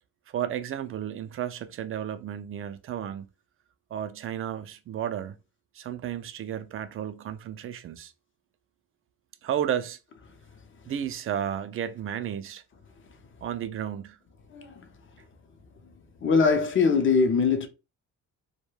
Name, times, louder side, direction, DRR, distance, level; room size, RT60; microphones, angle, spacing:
voice 1, 0.3-3.3 3.9-5.4 5.7-8.1 9.4-10.0 10.9-12.6 13.4-14.2, right 10 dB, 45° right, 0.4 m, -33 dB
voice 2, 14.5-14.9 16.2-17.7, left 5 dB, 40° left, 0.6 m, -22 dB
2.2 x 2.2 x 3.1 m
cardioid pair, 90°, 30 cm